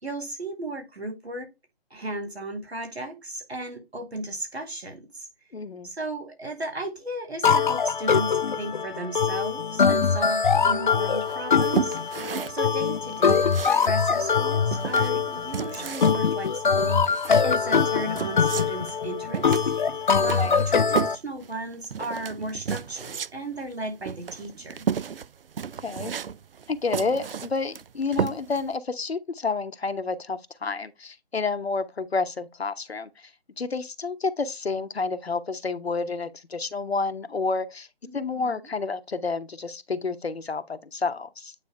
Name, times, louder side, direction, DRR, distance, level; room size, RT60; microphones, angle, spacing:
voice 1, 0.0-1.5 1.9-5.3 5.8-19.6 20.2-24.9 38.1-38.6, right 2 dB, 85° right, 3.5 m, -35 dB
voice 2, 5.5-5.9 20.4-20.6 25.8-26.1 26.7-33.3 33.6-37.9 38.1-41.5, left 4 dB, 80° left, 1.1 m, -30 dB
sound 1, 7.4-21.1, left 6 dB, 50° left, 0.5 m, -23 dB
sound 2, 11.2-28.7, right 7 dB, 65° right, 0.5 m, -33 dB
9.0 x 3.5 x 3.2 m
figure-of-eight pair, 155°, 31 cm